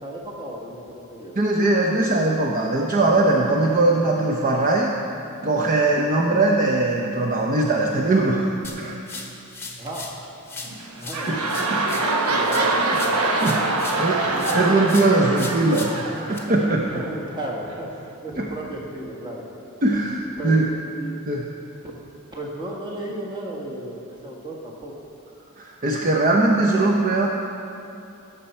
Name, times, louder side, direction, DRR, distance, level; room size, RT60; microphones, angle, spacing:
voice 1, 0.0-1.3 9.8-11.6 12.2-12.8 14.3-14.4 16.9-19.5 20.4-20.5 20.9-21.2 21.9-22.0 22.3-24.9, right 1 dB, 20° right, -2 dB, 1.6 m, -34 dB
voice 2, 1.4-5.0 5.4-9.3 11.3-11.4 11.7-12.0 12.8-16.9 18.4-18.5 19.8-20.7 21.3-21.4 25.6-27.3, right 2 dB, 40° right, -1 dB, 0.7 m, -21 dB
sound 1, 8.6-10.2 10.5-14.1 14.4-16.4, left 3 dB, 10° left, 1.2 m, -37 dB
sound 2, 10.7-17.0 17.7-17.8, right 2 dB, 85° right, 1.1 m, -24 dB
16.0 x 6.8 x 4.4 m, 2.7 s
head